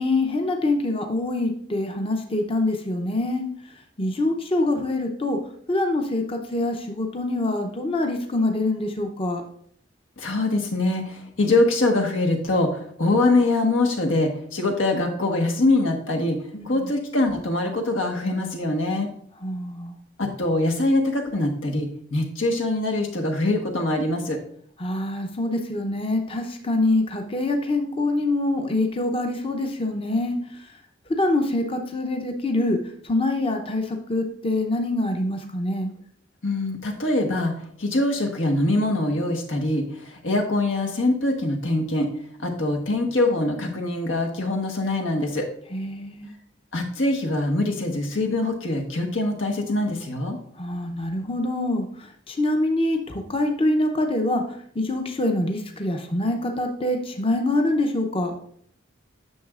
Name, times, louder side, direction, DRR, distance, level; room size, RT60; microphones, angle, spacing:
voice 1, 0.0-3.4 4.0-5.4 5.7-9.4 16.5-16.8 19.4-19.9 24.8-30.4 31.2-32.8 33.1-35.9 45.7-46.3 50.6-51.9 52.3-54.4 54.8-58.3, left 2 dB, 30° left, 4 dB, 0.6 m, -25 dB
voice 2, 10.2-16.4 16.6-19.1 20.2-24.4 36.4-37.5 37.8-42.1 42.4-45.5 46.7-50.4, left 2 dB, 90° left, 3 dB, 1.3 m, -23 dB
9.2 x 6.4 x 2.4 m, 0.62 s
head